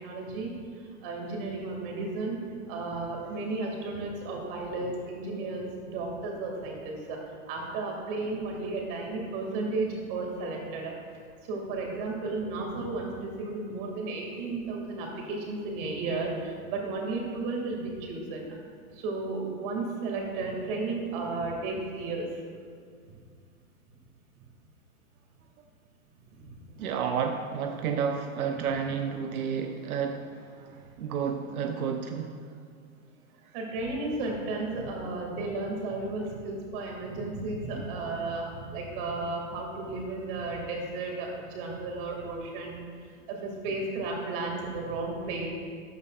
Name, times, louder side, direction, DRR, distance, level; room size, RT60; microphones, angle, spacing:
voice 1, 0.0-0.5 1.0-2.4 2.7-7.2 7.5-10.9 11.5-18.5 19.0-22.3 33.5-42.8 43.3-45.5, right 3 dB, 40° right, 0 dB, 2.3 m, -33 dB
voice 2, 26.8-32.4, right 7 dB, 85° right, 5 dB, 0.8 m, -31 dB
13.5 x 9.8 x 2.5 m, 2.1 s
supercardioid pair, 160°, 42 cm